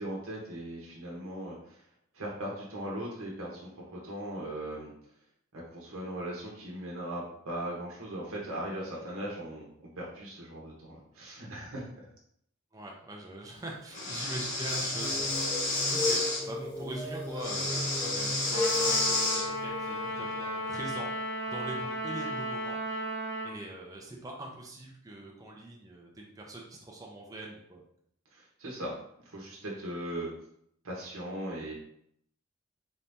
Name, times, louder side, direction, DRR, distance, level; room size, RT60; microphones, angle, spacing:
voice 1, 0.0-1.8 2.1-4.9 5.5-9.7 10.0-11.8 28.3-29.0 29.3-30.3 30.8-31.7, right 1 dB, 80° right, -3 dB, 1.0 m, -38 dB
voice 2, 12.7-15.2 15.9-21.1 21.5-22.8 23.4-27.8, right 1 dB, 15° right, -2 dB, 0.6 m, -42 dB
Breathing, 13.9-16.4 17.4-19.5, left 2 dB, 65° left, 1.1 m, -30 dB
sound 1, 14.9-21.3, left 2 dB, 20° left, 0.8 m, -36 dB
Trumpet, 18.5-23.5, equal, 85° left, 1.5 m, -35 dB
4.1 x 2.7 x 3.4 m, 0.70 s
head